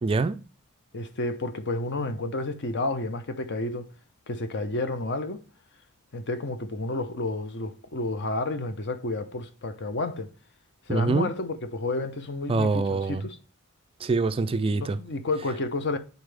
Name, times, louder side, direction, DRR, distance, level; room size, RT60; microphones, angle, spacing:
voice 1, 0.0-0.4 10.9-11.3 12.5-13.2 14.0-15.0, right 3 dB, 25° right, 0.3 m, -25 dB
voice 2, 0.9-3.9 4.3-5.4 6.1-10.3 10.9-13.4 14.8-16.0, left 2 dB, 55° left, 0.7 m, -30 dB
9.4 x 3.9 x 3.4 m
head